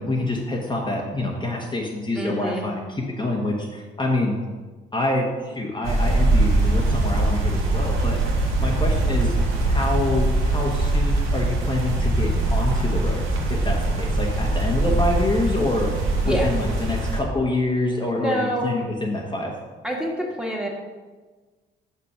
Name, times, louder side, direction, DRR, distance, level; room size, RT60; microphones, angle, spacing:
voice 1, 0.0-4.4 4.9-8.3 8.6-9.4 9.7-13.2 13.5-15.9 16.2-19.5, left 2 dB, 25° left, -2 dB, 1.2 m, -26 dB
voice 2, 2.2-2.6 16.2-16.5 18.2-18.7 19.8-20.7, equal, 5° right, -1 dB, 1.7 m, -26 dB
sound 1, 5.8-17.2, right 2 dB, 90° right, 1.7 m, -22 dB
6.0 x 5.6 x 5.6 m, 1.3 s
cardioid pair, 90°, 20 cm